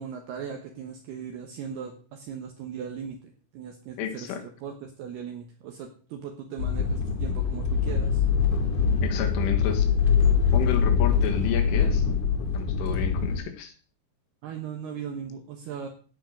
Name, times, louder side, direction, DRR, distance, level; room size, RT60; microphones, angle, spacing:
voice 1, 0.0-8.2 14.4-15.9, right 7 dB, 70° right, 3 dB, 3.0 m, -38 dB
voice 2, 4.0-4.4 9.0-9.9 10.5-12.1 12.5-13.7, left 9 dB, 80° left, 6 dB, 4.3 m, -31 dB
sound 1, 6.6-13.4, left 6 dB, 55° left, 2.7 m, -23 dB
16.5 x 6.0 x 6.5 m, 0.40 s
omnidirectional pair, 5.5 m